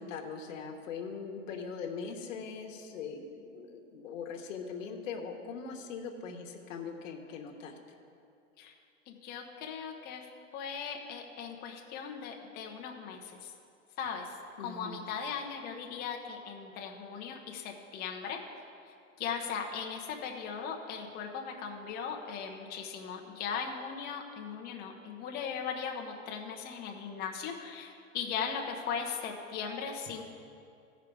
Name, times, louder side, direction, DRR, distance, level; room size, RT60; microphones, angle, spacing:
voice 1, 0.0-7.7 14.6-15.1, left 5 dB, 80° left, 3 dB, 1.1 m, -41 dB
voice 2, 9.1-10.3 10.5-13.5 14.0-14.3 14.6-18.4 18.9-30.2, left 6 dB, 25° left, 1 dB, 0.7 m, -38 dB
14.5 x 5.0 x 4.6 m, 2.5 s
supercardioid pair, 145°, 38 cm